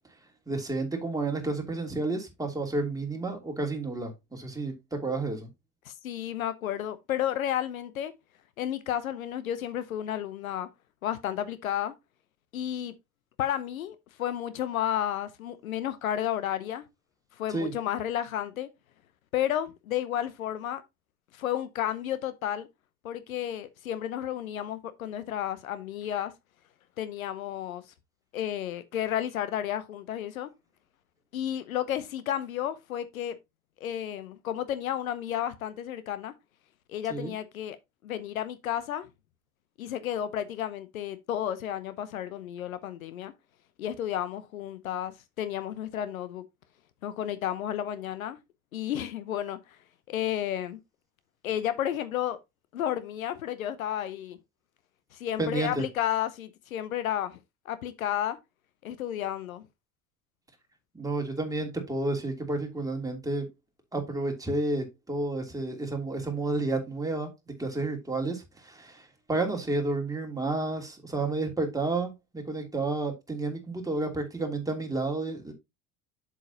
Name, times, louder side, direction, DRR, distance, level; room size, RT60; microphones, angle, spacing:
voice 1, 0.5-5.5 17.5-17.7 37.1-37.3 55.4-55.8 60.9-63.5 63.9-67.3 67.6-75.5, right 2 dB, 10° right, 2.8 m, -31 dB
voice 2, 5.8-8.1 8.6-10.7 11.0-11.9 12.5-12.9 13.4-16.8 17.4-18.7 19.3-20.8 21.3-22.7 23.0-26.3 27.0-27.8 28.3-30.5 31.3-33.4 33.8-36.3 36.9-37.8 38.0-39.1 39.8-43.3 43.8-46.4 47.0-48.4 48.7-49.6 50.1-50.8 51.4-52.4 52.7-54.4 55.1-57.4 57.7-58.4 58.8-59.7, left 11 dB, 70° left, 0.8 m, -32 dB
7.8 x 7.5 x 2.8 m
figure-of-eight pair, 65°, 43 cm